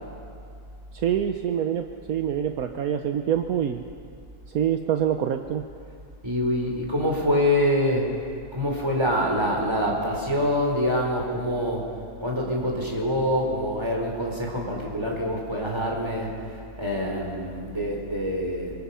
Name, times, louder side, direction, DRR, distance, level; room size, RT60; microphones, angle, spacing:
voice 1, 0.9-3.8 4.5-5.6, right 9 dB, 70° right, 6 dB, 1.2 m, -26 dB
voice 2, 6.2-8.1 8.5-11.9 12.2-18.8, equal, 15° right, -1 dB, 4.2 m, -25 dB
26.0 x 23.5 x 5.7 m, 2.3 s
omnidirectional pair, 1.7 m